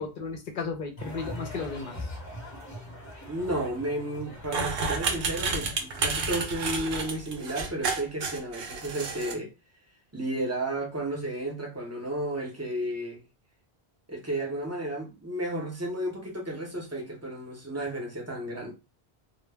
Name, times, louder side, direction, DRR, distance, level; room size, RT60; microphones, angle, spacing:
voice 1, 0.0-2.1, left 4 dB, 60° left, 0.7 m, -34 dB
sound 1, 1.0-6.0, left 1 dB, 20° left, 0.6 m, -41 dB
voice 2, 3.3-9.5 10.1-13.2 14.1-18.7, right 1 dB, 20° right, 0.6 m, -33 dB
sound 2, 4.4-9.3, right 4 dB, 65° right, 0.8 m, -30 dB
2.1 x 2.0 x 3.3 m
omnidirectional pair, 1.1 m